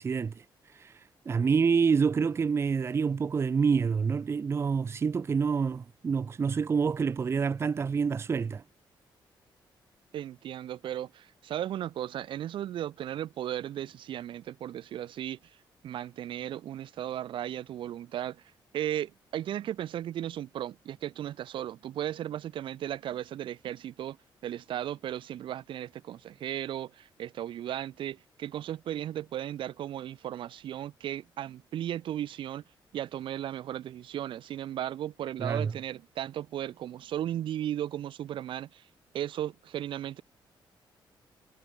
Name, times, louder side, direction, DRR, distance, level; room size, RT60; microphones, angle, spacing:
voice 1, 0.0-8.6 35.4-35.7, right 5 dB, 30° right, 1.0 m, -27 dB
voice 2, 10.1-15.4 15.8-18.4 18.7-24.2 24.4-32.6 32.9-38.8 39.1-40.2, right 11 dB, 75° right, 1.9 m, -36 dB
wide cardioid pair, 160°, 9 cm